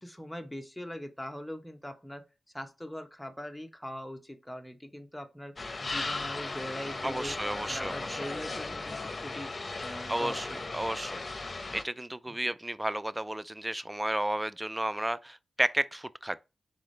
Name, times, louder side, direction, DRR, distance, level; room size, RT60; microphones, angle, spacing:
voice 1, 0.0-2.2 2.5-7.4 7.7-9.5 9.8-10.6 12.3-12.5, equal, 5° left, 0.9 m, -42 dB
sound 1, 5.6-11.8, left 3 dB, 45° left, 0.8 m, -37 dB
voice 2, 7.0-8.2 10.1-16.5, right 1 dB, 15° right, 0.3 m, -33 dB
4.0 x 3.7 x 3.2 m
cardioid pair, 45°, 0 cm